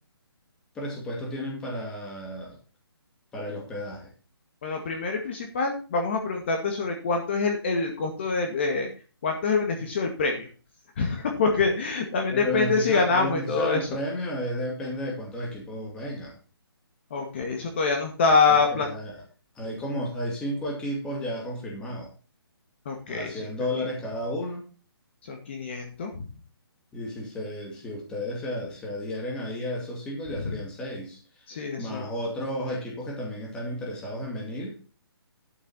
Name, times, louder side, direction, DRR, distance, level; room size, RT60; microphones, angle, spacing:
voice 1, 0.7-2.6 3.3-4.1 12.3-16.4 18.5-19.2 19.6-22.1 23.1-24.7 26.9-31.5 31.8-34.8, equal, 5° left, -1 dB, 2.3 m, -33 dB
voice 2, 4.6-8.9 9.2-10.5 11.0-13.9 17.1-18.9 22.9-23.5 25.3-26.3 31.5-32.0, left 4 dB, 25° left, 3 dB, 1.9 m, -25 dB
12.0 x 8.1 x 4.2 m, 0.35 s
hypercardioid pair, 175°, 13 cm